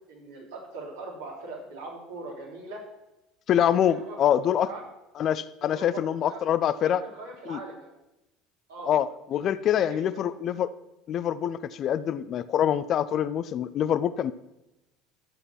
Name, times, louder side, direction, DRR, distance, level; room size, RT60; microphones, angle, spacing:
voice 1, 0.1-2.8 3.6-4.8 5.6-6.4 6.8-7.9 8.7-8.9 9.3-9.4 9.8-10.3, right 2 dB, 70° right, -2 dB, 3.5 m, -41 dB
voice 2, 3.5-4.7 5.2-7.0 7.5-7.6 8.8-10.7 11.1-14.3, left 10 dB, 45° left, 15 dB, 0.5 m, -25 dB
12.5 x 7.8 x 6.0 m, 0.95 s
figure-of-eight pair, 65°, 0 cm